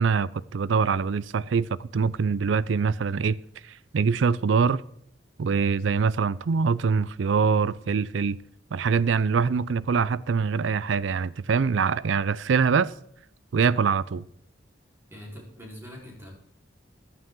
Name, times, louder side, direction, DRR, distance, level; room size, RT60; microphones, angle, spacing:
voice 1, 0.0-3.4 3.7-4.8 5.4-8.4 8.7-12.9 13.5-14.2, right 5 dB, 80° right, 0.4 m, -24 dB
voice 2, 15.1-16.3, equal, 15° right, 4.1 m, -43 dB
14.0 x 12.0 x 3.8 m
head